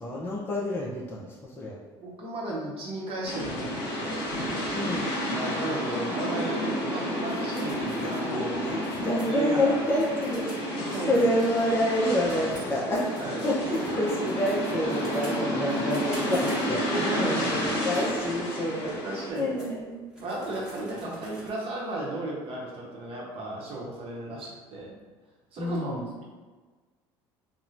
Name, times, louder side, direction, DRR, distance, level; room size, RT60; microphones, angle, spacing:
voice 1, 0.0-1.8 4.7-5.1 8.0-13.1 13.4-18.9 19.4-20.0 25.6-26.1, left 1 dB, 15° left, -5 dB, 0.5 m, -28 dB
voice 2, 2.0-4.3 5.3-8.8 9.3-9.8 10.7-11.1 13.2-13.4 16.9-17.5 18.0-18.1 18.8-19.5 20.2-25.0 25.5-26.0, right 2 dB, 45° right, -3 dB, 0.8 m, -34 dB
sound 1, 3.2-19.3, equal, 45° left, 1.0 m, -31 dB
sound 2, 7.3-12.0 12.3-17.0 17.6-18.1 18.5-18.6 19.1-21.5, right 1 dB, 5° right, 1.1 m, -47 dB
2.9 x 2.1 x 2.4 m, 1.4 s
hypercardioid pair, 70°, 13 cm